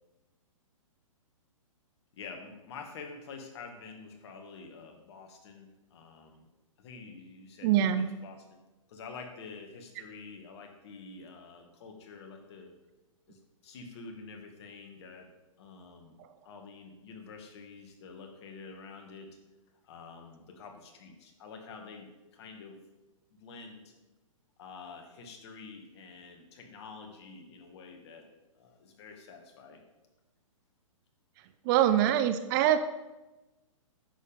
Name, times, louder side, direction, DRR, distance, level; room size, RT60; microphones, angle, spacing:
voice 1, 2.1-6.5 6.8-8.6 8.9-12.7 13.3-15.3 15.6-16.2 16.4-19.3 19.8-22.8 23.4-23.9 24.6-28.3 28.5-29.8, left 4 dB, 50° left, 4 dB, 2.1 m, -48 dB
voice 2, 7.6-8.1 31.6-32.8, right 11 dB, 35° right, 11 dB, 0.6 m, -24 dB
10.0 x 7.3 x 5.4 m, 1.1 s
hypercardioid pair, 125°, 18 cm